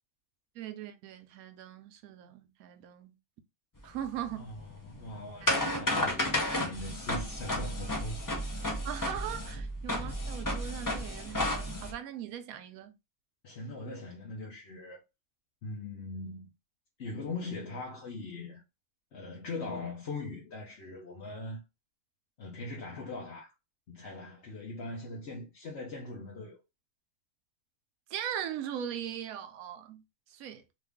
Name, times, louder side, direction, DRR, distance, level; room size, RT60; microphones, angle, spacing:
voice 1, 0.5-3.2 3.8-4.5 5.4-5.5 8.8-12.9 28.1-30.0 30.3-30.6, right 10 dB, 75° right, 1.0 m, -40 dB
sound 1, 3.8-11.9, left 1 dB, 30° left, 0.3 m, -32 dB
voice 2, 4.4-8.3 13.4-15.0 15.6-16.5 17.0-18.6 19.1-21.6 22.4-23.5 23.9-26.6, left 2 dB, 55° left, 0.9 m, -41 dB
3.0 x 2.4 x 3.4 m
omnidirectional pair, 1.6 m